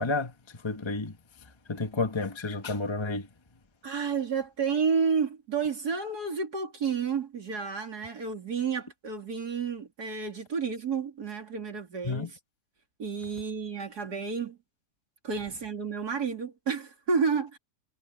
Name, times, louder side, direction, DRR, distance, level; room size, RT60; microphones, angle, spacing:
voice 1, 0.0-3.3 12.0-12.3, left 3 dB, 20° left, 1.1 m, -31 dB
voice 2, 3.8-12.3 13.0-14.6 15.2-17.6, right 5 dB, 65° right, 3.4 m, -30 dB
omnidirectional pair, 1.9 m